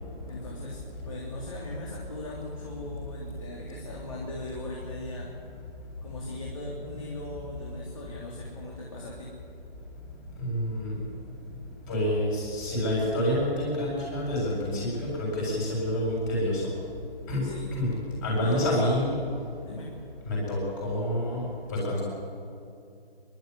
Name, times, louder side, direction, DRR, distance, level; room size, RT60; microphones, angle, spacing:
voice 1, 0.3-5.3 6.0-9.3 17.4-17.7 18.3-18.7 19.6-19.9, left 2 dB, 35° left, -3 dB, 3.4 m, -39 dB
voice 2, 10.4-11.0 11.9-16.6 17.3-17.9 18.2-19.2 20.3-22.0, left 1 dB, 20° left, -4 dB, 7.1 m, -28 dB
26.5 x 12.0 x 9.7 m, 2.6 s
hypercardioid pair, 165°, 30 cm